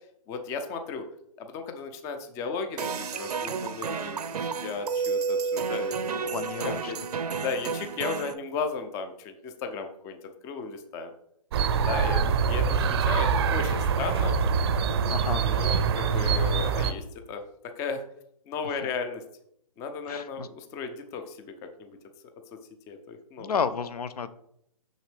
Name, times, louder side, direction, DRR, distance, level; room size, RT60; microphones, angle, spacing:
voice 1, 0.3-1.0 1.4-7.0 7.4-10.2 10.4-11.1 11.7-14.3 15.3-17.4 17.8-18.0 18.5-19.2 19.8-21.5 21.8-21.9 22.9-23.5, left 5 dB, 15° left, 7 dB, 0.5 m, -35 dB
sound 1, 2.8-8.3, right 5 dB, 80° right, 0.7 m, -31 dB
voice 2, 6.3-6.9 7.3-7.4 12.2-12.3 15.1-15.4 20.1-20.5 23.4-24.3, left 6 dB, 75° left, 14 dB, 0.7 m, -31 dB
sound 2, 11.5-16.9, right 6 dB, 40° right, 0.6 m, -24 dB
6.3 x 6.3 x 3.4 m, 0.74 s
hypercardioid pair, 145°, 20 cm